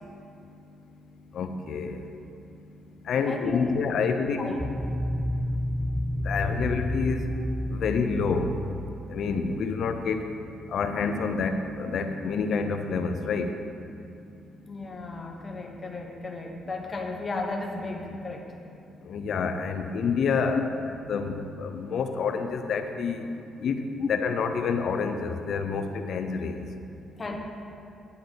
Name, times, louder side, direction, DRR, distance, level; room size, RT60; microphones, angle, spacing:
voice 1, 1.3-2.0 3.1-4.6 6.2-7.3 7.8-8.5 9.1-10.2 10.7-13.5 19.1-20.7 21.1-23.2 23.6-23.7 24.1-26.5, left 5 dB, 65° left, 7 dB, 0.7 m, -28 dB
voice 2, 3.3-3.7 4.4-4.6 14.7-18.5 20.5-20.6 27.2-27.4, left 3 dB, 30° left, 1 dB, 1.2 m, -34 dB
sound 1, 4.6-9.3, equal, 10° right, 0.5 m, -30 dB
9.3 x 8.6 x 4.1 m, 2.6 s
cardioid pair, 90°, 0 cm